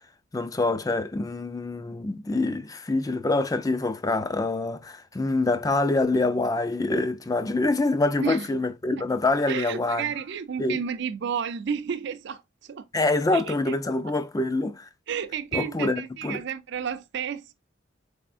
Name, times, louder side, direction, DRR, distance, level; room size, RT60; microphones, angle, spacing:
voice 1, 0.3-10.0 10.6-10.8 12.9-14.9 15.5-16.4, left 2 dB, 20° left, 0.4 m, -25 dB
voice 2, 9.5-12.9 13.3-13.8 15.1-17.5, right 7 dB, 60° right, 0.4 m, -31 dB
4.1 x 3.5 x 2.4 m
head